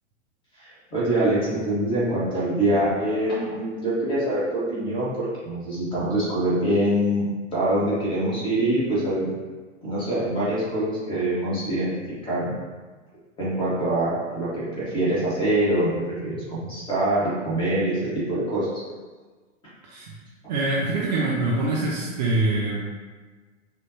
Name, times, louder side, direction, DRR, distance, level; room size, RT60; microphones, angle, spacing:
voice 1, 0.6-5.1 5.4-7.2 7.5-9.3 9.8-11.9 12.2-12.5 13.4-18.0 18.3-18.7, right 1 dB, 15° left, -8 dB, 1.5 m, -24 dB
voice 2, 20.5-22.8, right 2 dB, 35° right, -4 dB, 0.6 m, -24 dB
5.4 x 2.6 x 2.8 m, 1.3 s
figure-of-eight pair, 110°, 39 cm